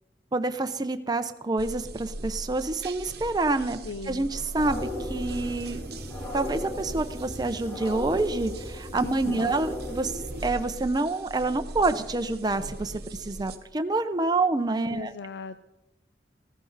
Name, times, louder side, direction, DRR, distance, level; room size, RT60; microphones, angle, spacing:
voice 1, 0.3-3.8 4.1-5.8 6.3-10.1 10.4-12.9 13.2-15.1, right 2 dB, 25° right, 8 dB, 0.6 m, -27 dB
sound 1, 1.6-13.6, right 2 dB, 60° right, 1.0 m, -40 dB
voice 2, 3.8-4.3 9.0-9.5 14.9-15.6, left 4 dB, 75° left, 12 dB, 0.5 m, -38 dB
sound 2, 4.6-10.4, left 1 dB, 15° left, 1.6 m, -37 dB
14.5 x 14.0 x 4.0 m, 0.98 s
head